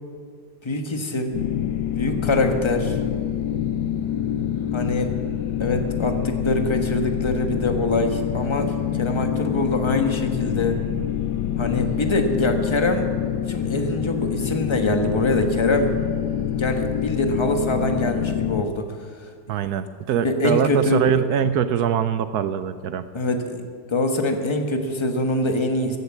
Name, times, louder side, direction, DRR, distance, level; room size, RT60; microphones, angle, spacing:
voice 1, 0.6-1.3 2.0-3.0 4.7-5.1 5.6-10.8 11.6-13.1 13.5-15.9 16.5-19.0 20.2-21.2 23.1-23.6 23.9-26.0, left 1 dB, 20° left, 5 dB, 1.0 m, -24 dB
sound 1, 1.3-18.6, left 10 dB, 80° left, 1.2 m, -26 dB
voice 2, 19.5-23.0, right 8 dB, 70° right, 12 dB, 1.0 m, -23 dB
15.5 x 9.7 x 7.3 m, 2.1 s
omnidirectional pair, 1.9 m